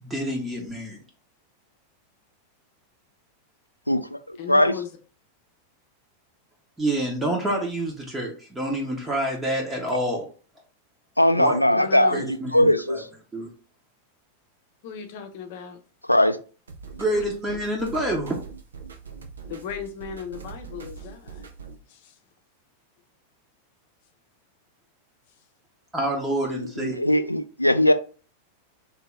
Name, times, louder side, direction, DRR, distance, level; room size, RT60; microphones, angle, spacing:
voice 1, 0.0-1.0 6.8-10.3 11.4-11.6 12.1-13.0 13.3-13.5 17.0-18.4 25.9-27.0, right 1 dB, 10° right, 0.9 m, -27 dB
voice 2, 3.9-4.7 11.2-13.1 16.1-16.4 26.5-27.9, left 1 dB, 85° left, 0.3 m, -20 dB
voice 3, 4.4-4.9 11.7-12.2 14.8-15.8 17.1-17.3 17.9-18.0 19.4-21.5 21.9-22.2, left 7 dB, 50° left, 0.7 m, -36 dB
sound 1, 16.7-21.8, right 5 dB, 70° right, 0.6 m, -42 dB
3.1 x 2.9 x 3.6 m
figure-of-eight pair, 90°, 0 cm